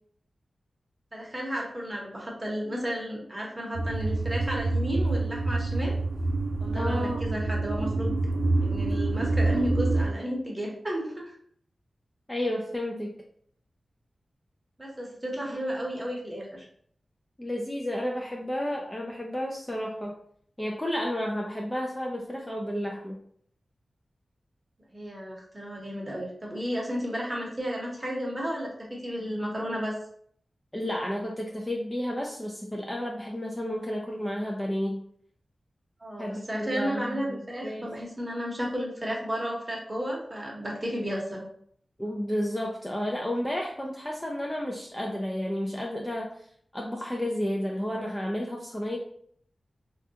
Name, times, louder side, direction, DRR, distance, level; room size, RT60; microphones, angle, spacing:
voice 1, 1.1-5.9 6.6-8.1 8.6-11.4 14.8-16.6 24.9-30.0 36.0-41.5, equal, 20° right, -2 dB, 0.8 m, -33 dB
sound 1, 3.8-10.1, right 2 dB, 80° right, 0.4 m, -27 dB
voice 2, 6.7-7.2 12.3-13.1 17.4-20.1 20.6-23.2 30.7-35.0 36.2-37.9 42.0-46.5 46.7-49.0, equal, 10° left, -1 dB, 0.4 m, -31 dB
3.3 x 2.3 x 2.7 m, 0.63 s
wide cardioid pair, 115°, 0 cm